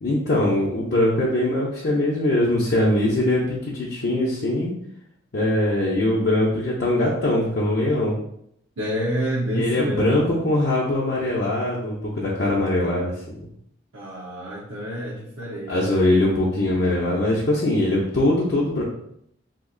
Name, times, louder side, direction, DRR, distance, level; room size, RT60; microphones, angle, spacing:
voice 1, 0.0-4.7 5.3-8.1 9.5-13.5 15.7-18.8, left 1 dB, 55° left, -5 dB, 0.6 m, -22 dB
voice 2, 8.8-10.0 13.9-16.0, equal, 85° right, -7 dB, 0.7 m, -28 dB
2.8 x 2.4 x 3.7 m, 0.72 s
head